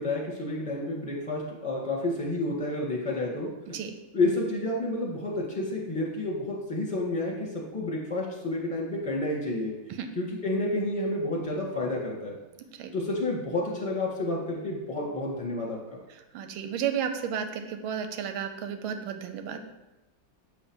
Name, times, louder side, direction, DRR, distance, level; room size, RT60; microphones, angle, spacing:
voice 1, 0.0-3.8 4.1-9.7 10.1-12.4 12.9-16.0, left 2 dB, 5° left, -3 dB, 1.2 m, -30 dB
voice 2, 16.3-19.6, right 8 dB, 90° right, 7 dB, 1.5 m, -32 dB
7.3 x 3.1 x 6.1 m, 1.0 s
omnidirectional pair, 2.2 m